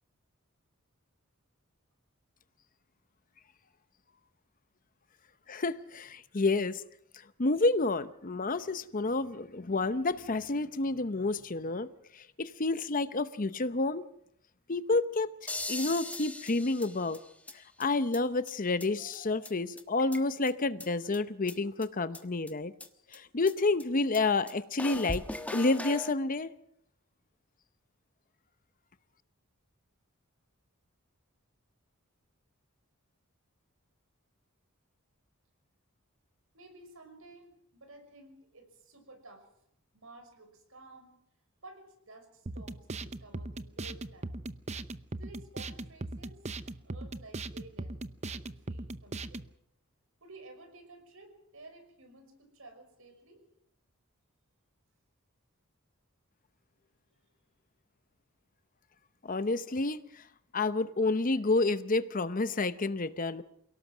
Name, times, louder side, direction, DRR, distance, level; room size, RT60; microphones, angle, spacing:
voice 1, 5.5-6.8 7.4-11.9 12.1-14.0 14.7-15.3 15.7-17.2 17.8-22.7 23.1-25.3 25.5-26.5 59.2-60.2 60.5-63.4, left 3 dB, 40° left, 13 dB, 0.8 m, -29 dB
sound 1, 15.5-17.5 17.8-17.9 18.1-18.2 18.5-18.6 18.8-18.9 19.1-19.2 19.4-19.5 19.8-20.5 20.8-20.9 21.1-21.2 21.5-21.6 21.8-21.9 22.1-22.2 22.5-22.6 22.8-22.9 23.1-23.2 23.5-23.6 23.8-23.9 24.1-24.2 24.5-24.6 24.8-26.1, left 2 dB, 5° left, 1.2 m, -39 dB
voice 2, 36.5-39.5 39.9-41.2 41.6-44.4 45.2-48.0 48.2-49.4 50.2-53.4, right 2 dB, 70° right, 6 dB, 5.9 m, -53 dB
sound 2, 42.5-49.5, right 2 dB, 30° right, 0.7 m, -39 dB
28.0 x 18.0 x 6.1 m, 0.73 s
head